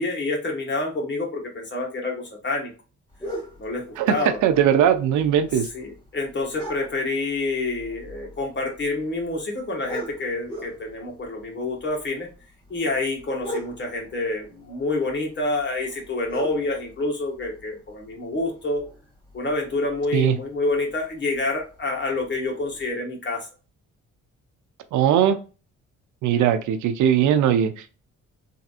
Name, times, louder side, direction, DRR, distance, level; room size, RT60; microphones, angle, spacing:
voice 1, 0.0-2.7 3.6-4.4 5.7-12.3 12.7-18.9 19.3-23.5, left 2 dB, 35° left, 0 dB, 1.4 m, -28 dB
sound 1, 3.1-22.9, right 1 dB, 15° left, 1.7 m, -42 dB
voice 2, 4.0-5.7 20.1-20.4 24.9-25.4 26.2-27.7, right 9 dB, 75° right, 9 dB, 0.5 m, -19 dB
3.4 x 2.6 x 2.4 m, 0.35 s
cardioid pair, 90°, 30 cm